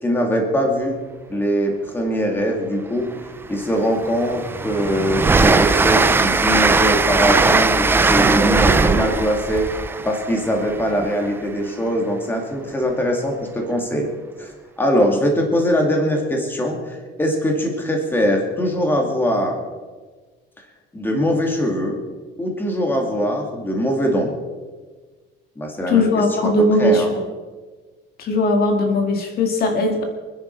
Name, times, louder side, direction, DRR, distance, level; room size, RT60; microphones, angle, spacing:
voice 1, 0.0-1.0 1.3-3.1 3.5-14.1 14.4-19.6 20.9-22.0 22.4-24.3 25.6-26.5 26.8-27.1, equal, 10° left, 1 dB, 2.3 m, -22 dB
Train, 3.1-3.2 3.6-11.4, right 3 dB, 10° right, 0.4 m, -19 dB
voice 2, 25.9-27.0 28.2-30.0, left 2 dB, 50° left, 4 dB, 2.0 m, -18 dB
26.0 x 10.0 x 4.6 m, 1.4 s
cardioid pair, 170°, 21 cm